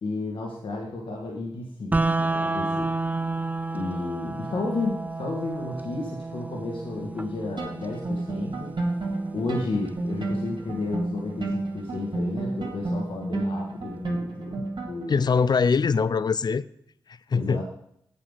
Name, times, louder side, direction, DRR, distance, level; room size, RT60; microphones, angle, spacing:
voice 1, 0.0-2.9 3.7-8.8 9.3-15.3 17.3-17.6, left 2 dB, 90° left, 1.5 m, -32 dB
sound 1, 1.9-11.9, right 3 dB, 20° right, 0.3 m, -32 dB
sound 2, 7.6-15.2, right 2 dB, 60° right, 2.0 m, -31 dB
voice 2, 15.1-16.6 17.3-17.6, left 5 dB, 55° left, 0.4 m, -22 dB
8.5 x 6.8 x 5.5 m
cardioid pair, 55°, 9 cm